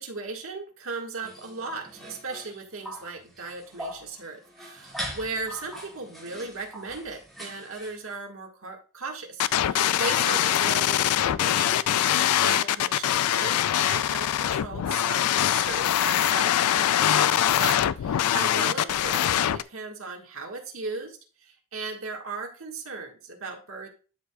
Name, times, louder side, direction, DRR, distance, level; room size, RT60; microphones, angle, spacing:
voice 1, 0.0-23.9, right 3 dB, 65° right, 2 dB, 1.7 m, -37 dB
sound 1, 1.2-8.1, equal, ahead, 2.1 m, -41 dB
sound 2, 9.4-19.6, left 11 dB, 85° left, 0.3 m, -23 dB
12.0 x 4.9 x 2.3 m, 0.36 s
head